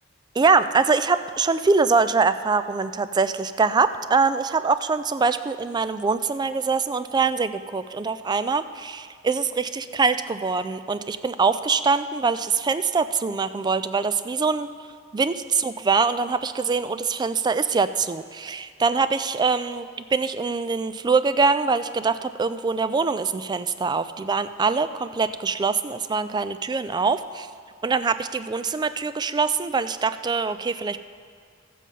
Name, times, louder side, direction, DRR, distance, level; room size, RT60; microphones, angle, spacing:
voice 1, 0.4-14.7 15.1-27.5 27.8-31.0, right 4 dB, 20° right, 13 dB, 0.3 m, -23 dB
14.0 x 7.4 x 5.4 m, 2.1 s
head